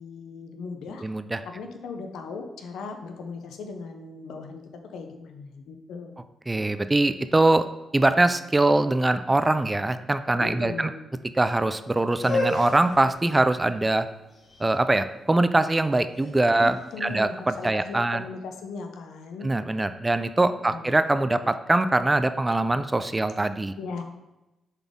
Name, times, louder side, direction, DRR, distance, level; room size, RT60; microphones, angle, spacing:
voice 1, 0.0-1.0 1.4-6.2 10.4-11.1 16.6-19.5 20.5-21.0 23.8-24.0, left 4 dB, 85° left, 5 dB, 0.7 m, -38 dB
voice 2, 1.0-1.4 6.5-7.7 7.9-10.9 11.4-14.1 14.6-16.7 17.0-18.2 19.4-23.7, right 2 dB, 20° right, 11 dB, 0.4 m, -22 dB
sound 1, 12.1-18.0, left 2 dB, 55° left, 1.8 m, -34 dB
7.0 x 4.1 x 3.6 m, 0.99 s
cardioid pair, 75°, 0 cm